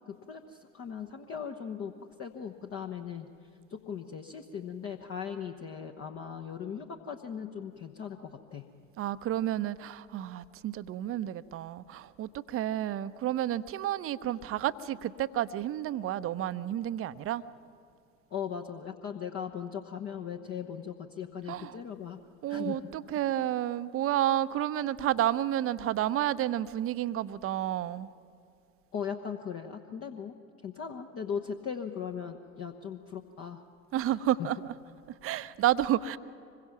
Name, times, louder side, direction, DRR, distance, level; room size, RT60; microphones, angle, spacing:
voice 1, 0.1-1.9 2.2-3.3 3.7-8.7 18.3-22.2 22.5-22.8 28.9-30.3 30.6-33.6 34.1-34.5, left 7 dB, 35° left, 4 dB, 1.2 m, -38 dB
voice 2, 9.0-17.4 21.5-21.8 22.4-28.1 33.9-34.7 35.2-36.2, right 12 dB, 35° right, 13 dB, 0.8 m, -30 dB
25.5 x 22.5 x 5.9 m, 2.5 s
figure-of-eight pair, 70°, 40 cm